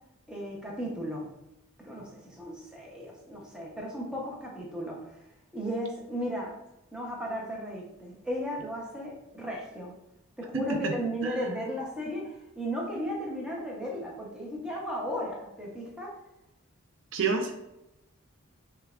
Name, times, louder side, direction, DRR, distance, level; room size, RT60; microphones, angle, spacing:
voice 1, 0.3-1.3 1.8-5.2 5.5-6.6 6.9-9.9 10.4-16.1, equal, 5° right, -4 dB, 0.6 m, -35 dB
voice 2, 10.5-10.9 11.2-11.4 17.1-17.5, right 4 dB, 60° right, 3 dB, 0.4 m, -28 dB
5.5 x 2.3 x 2.3 m, 0.89 s
head